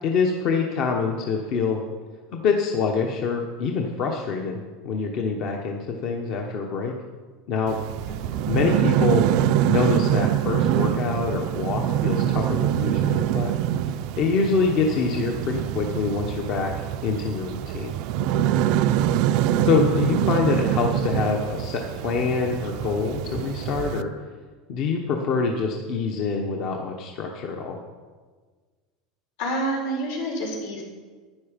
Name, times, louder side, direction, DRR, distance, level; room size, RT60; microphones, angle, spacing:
voice 1, 0.0-1.8 2.3-6.9 7.5-7.8 8.5-9.2 9.7-13.5 14.2-16.7 17.0-17.9 19.7-24.1 24.7-27.8, left 5 dB, 45° left, 1 dB, 1.0 m, -25 dB
sound 1, 7.7-24.0, right 11 dB, 55° right, 0.4 m, -24 dB
voice 2, 8.1-8.5 19.6-20.0 29.4-30.8, right 1 dB, 85° left, -1 dB, 4.5 m, -29 dB
12.0 x 9.9 x 5.2 m, 1.5 s
supercardioid pair, 160°, 0 cm